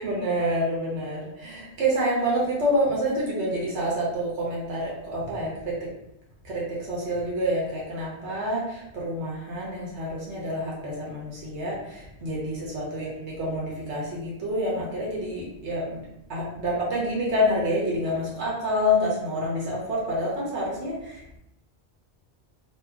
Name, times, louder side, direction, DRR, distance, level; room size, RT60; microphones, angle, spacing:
voice 1, 0.0-5.8 6.4-16.0 16.3-21.4, equal, 85° right, -5 dB, 1.3 m, -27 dB
2.8 x 2.4 x 3.5 m, 0.82 s
omnidirectional pair, 1.1 m